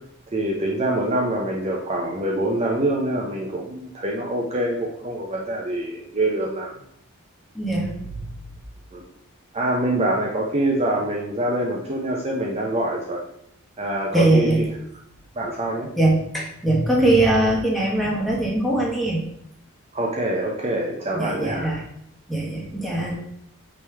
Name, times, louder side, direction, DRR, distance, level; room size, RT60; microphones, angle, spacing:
voice 1, 0.3-6.7 8.9-9.0 9.5-13.2 13.8-14.5 15.4-15.9 19.9-21.8, right 1 dB, 30° right, -2 dB, 0.7 m, -25 dB
voice 2, 7.5-7.9 14.1-14.6 16.0-19.2 21.1-21.8 22.3-23.2, right 1 dB, ahead, -4 dB, 1.4 m, -21 dB
8.7 x 3.2 x 3.4 m, 0.72 s
head